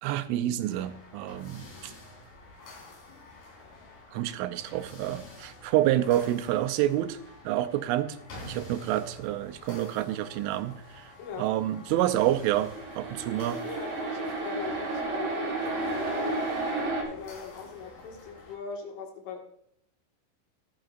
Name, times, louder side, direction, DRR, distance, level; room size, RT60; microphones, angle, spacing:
voice 1, 0.0-1.9 4.1-7.2 7.4-8.2 8.5-11.1 11.4-13.6, right 13 dB, 90° right, 10 dB, 3.2 m, -28 dB
sound 1, 0.7-18.6, left 1 dB, 45° left, 4.4 m, -49 dB
voice 2, 11.2-11.5 13.6-16.5 17.1-19.4, left 5 dB, 85° left, 1 dB, 4.3 m, -40 dB
sound 2, 12.3-17.0, right 2 dB, 50° right, 4.4 m, -32 dB
15.0 x 11.5 x 2.5 m, 0.71 s
omnidirectional pair, 5.5 m